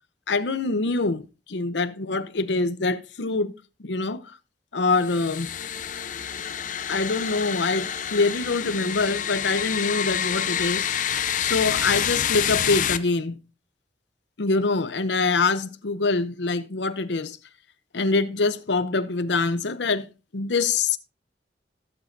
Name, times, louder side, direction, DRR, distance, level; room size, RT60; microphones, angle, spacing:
voice 1, 0.3-3.5 3.8-4.2 4.7-5.5 6.9-10.9 11.4-13.4 14.4-17.4 17.9-20.1 20.3-21.0, left 3 dB, 85° left, 0.7 m, -24 dB
sound 1, 5.0-13.0, left 9 dB, 45° left, 0.5 m, -28 dB
15.5 x 7.2 x 2.7 m
head